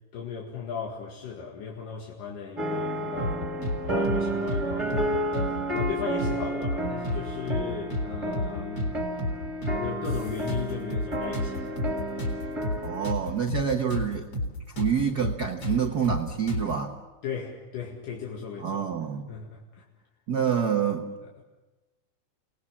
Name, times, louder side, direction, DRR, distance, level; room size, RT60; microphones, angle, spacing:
voice 1, 0.1-8.9 9.7-12.1 17.2-18.9 19.3-19.8 21.2-21.4, left 6 dB, 80° left, -1 dB, 3.7 m, -37 dB
sound 1, 2.6-13.1, right 1 dB, 10° right, 1.8 m, -31 dB
sound 2, 3.2-3.8 4.0-4.2 4.5-5.5 5.8-5.9 6.2-7.2 7.5-7.6 7.9-8.9 9.2-9.4 9.6-11.1 11.3-14.1 14.3-14.5 14.8-16.8, left 1 dB, 40° left, 4.8 m, -30 dB
voice 2, 12.8-14.3 14.8-17.0 18.6-19.3 20.3-21.1, right 7 dB, 80° right, 4 dB, 0.9 m, -27 dB
29.0 x 19.5 x 7.2 m, 1.2 s
omnidirectional pair, 3.7 m